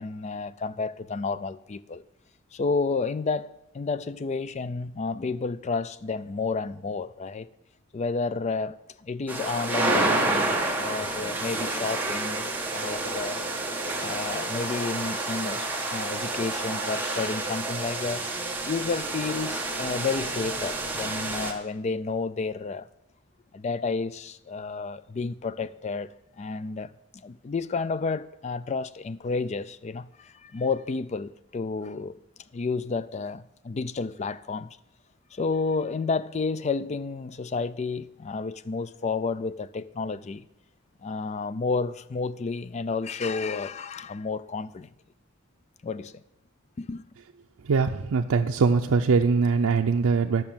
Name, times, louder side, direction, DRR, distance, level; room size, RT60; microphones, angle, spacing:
voice 1, 0.0-2.0 2.5-7.5 7.9-8.8 9.0-12.5 12.7-13.4 14.0-18.3 18.6-22.9 23.5-26.1 26.4-26.9 27.2-32.2 32.5-34.7 35.3-40.5 41.0-44.9 45.8-46.2 46.8-47.0, left 4 dB, 30° left, 0.3 m, -31 dB
sound 1, 9.3-21.5, right 2 dB, 10° right, 1.2 m, -29 dB
voice 2, 47.6-50.4, right 5 dB, 85° right, 0.5 m, -22 dB
10.5 x 6.1 x 7.3 m
head